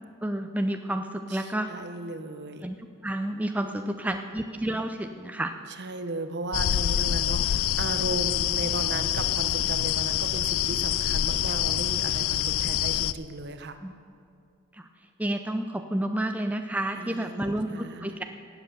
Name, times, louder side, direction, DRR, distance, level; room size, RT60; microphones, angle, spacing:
voice 1, 0.2-1.7 2.6-2.8 3.0-5.5 13.8-13.9 14.8-14.9 15.2-17.7 18.0-18.2, right 1 dB, 5° right, 6 dB, 0.5 m, -30 dB
voice 2, 1.3-2.7 3.6-4.3 5.7-13.8 17.0-18.2, right 2 dB, 55° right, 9 dB, 0.9 m, -36 dB
sound 1, 6.5-13.1, left 12 dB, 70° left, 0.3 m, -26 dB
17.5 x 8.0 x 6.8 m, 2.4 s
head